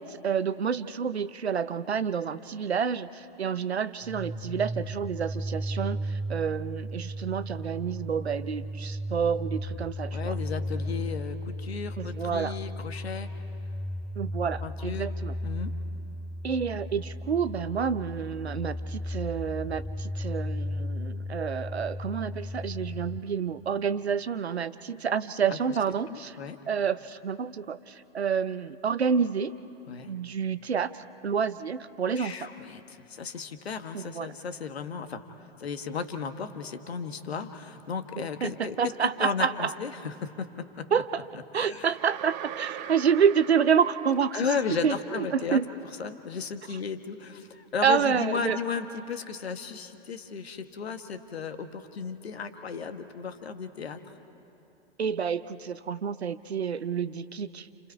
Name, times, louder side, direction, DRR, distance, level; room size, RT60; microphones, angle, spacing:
voice 1, 0.0-10.4 12.0-12.6 14.2-15.3 16.4-26.4 26.7-29.5 30.1-32.5 33.9-34.3 38.2-39.7 40.9-41.3 41.5-44.4 44.8-45.7 47.8-48.6 55.0-57.7, right 7 dB, 85° right, 14 dB, 0.8 m, -28 dB
sound 1, 4.0-23.2, equal, 5° left, 3.6 m, -35 dB
voice 2, 10.1-13.3 14.6-15.1 15.4-15.7 25.5-25.6 26.1-26.6 29.9-30.1 32.1-35.2 35.6-40.9 41.5-41.9 42.8-42.9 44.3-45.6 46.0-54.0, left 6 dB, 75° left, 8 dB, 1.6 m, -35 dB
sound 2, 41.9-45.0, right 12 dB, 45° right, 0.9 m, -41 dB
29.5 x 29.5 x 4.6 m, 2.9 s
figure-of-eight pair, 100°, 31 cm